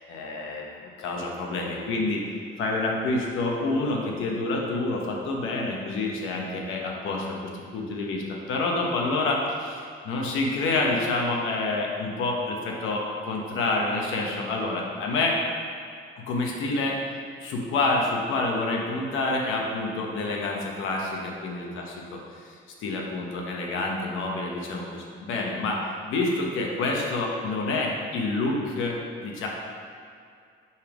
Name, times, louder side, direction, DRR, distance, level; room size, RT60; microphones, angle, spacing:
voice 1, 0.1-2.2 2.6-15.4 16.2-17.0 17.4-21.9 22.1-22.2 22.8-29.0 29.2-29.5, left 2 dB, 85° left, 0 dB, 0.9 m, -28 dB
5.5 x 3.4 x 5.0 m, 2.2 s
cardioid pair, 90°, 20 cm